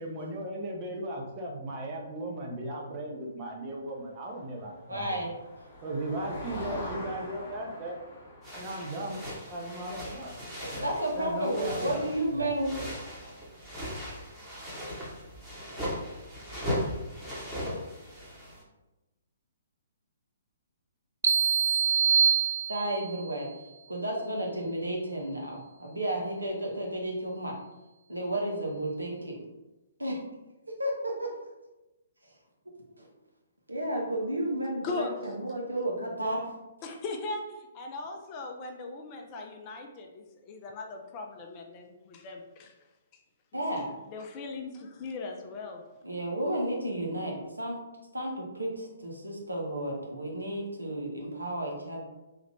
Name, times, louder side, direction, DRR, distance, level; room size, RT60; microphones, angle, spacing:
voice 1, 0.0-5.3 5.8-7.9 8.5-10.3 10.7-10.9 11.1-12.5, right 1 dB, 30° right, -1 dB, 0.7 m, -37 dB
Motor vehicle (road), 4.6-12.4, left 1 dB, 45° left, 1.1 m, -44 dB
voice 2, 4.9-5.3 10.6-12.7 22.7-23.5 23.9-27.6 28.1-29.4 30.0-30.2 30.8-31.3 32.7-33.1 33.7-36.5 43.5-43.9 46.0-47.8 48.1-52.0, right 1 dB, 85° right, -1 dB, 0.8 m, -32 dB
sound 1, 8.4-18.6, equal, 10° right, 1.0 m, -38 dB
sound 2, 21.2-23.2, right 7 dB, 60° right, 0.3 m, -24 dB
voice 3, 34.8-35.4 36.8-42.7 43.1-43.2 43.7-45.8, left 3 dB, 30° left, 3 dB, 0.4 m, -39 dB
3.2 x 2.4 x 3.2 m, 1.0 s
figure-of-eight pair, 125°, 0 cm